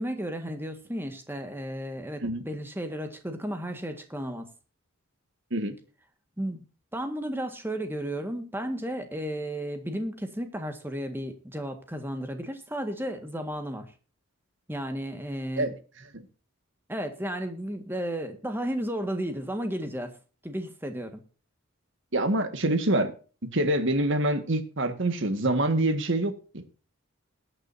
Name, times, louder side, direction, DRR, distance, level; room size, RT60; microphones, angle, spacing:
voice 1, 0.0-4.5 6.4-6.6 6.9-13.9 14.7-15.7 16.9-20.1 20.4-21.2, equal, 10° right, 1.7 m, -33 dB
voice 2, 22.1-23.1 23.5-26.6, right 1 dB, 60° right, 1.7 m, -25 dB
21.0 x 8.9 x 2.7 m
head